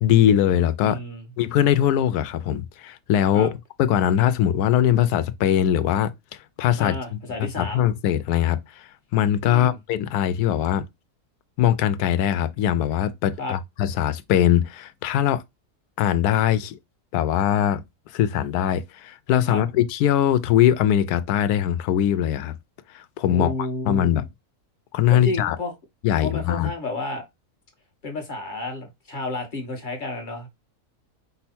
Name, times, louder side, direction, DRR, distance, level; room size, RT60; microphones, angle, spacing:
voice 1, 0.0-1.0 1.4-3.5 3.8-7.0 7.4-10.9 11.6-15.4 16.0-16.8 17.1-17.8 18.1-22.6 22.9-23.5 23.9-24.3 24.9-25.6 26.0-26.7, left 10 dB, 85° left, 1.1 m, -21 dB
voice 2, 0.8-1.2 3.3-3.5 6.8-7.9 9.4-9.8 13.4-13.6 19.5-19.6 23.3-24.1 25.1-25.7 26.2-27.2 28.0-30.5, left 2 dB, 35° left, 1.2 m, -31 dB
5.3 x 2.0 x 4.2 m
omnidirectional pair, 1.6 m